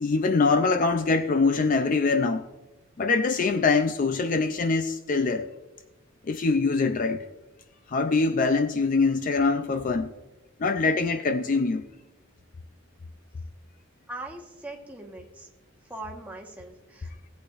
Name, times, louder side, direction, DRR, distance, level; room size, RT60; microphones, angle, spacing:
voice 1, 0.0-2.4 3.0-5.5 6.2-7.2 7.9-10.1 10.6-11.8, left 4 dB, 40° left, 0.4 m, -23 dB
voice 2, 14.1-15.5 15.9-17.3, right 2 dB, 5° right, 1.2 m, -41 dB
17.0 x 8.5 x 2.5 m
head